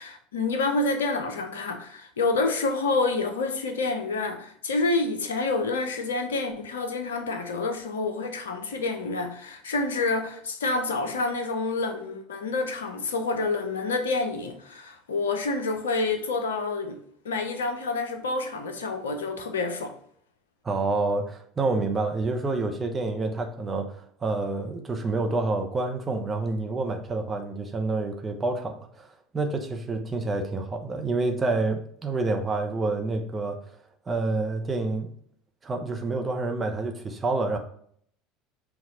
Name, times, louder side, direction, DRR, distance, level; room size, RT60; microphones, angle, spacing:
voice 1, 0.0-17.0 17.2-19.9, left 3 dB, 70° left, 0.5 m, -28 dB
voice 2, 20.6-33.6 34.1-35.1 35.6-37.6, right 3 dB, 20° right, 0.6 m, -28 dB
5.6 x 2.3 x 3.9 m
figure-of-eight pair, 70°, 0 cm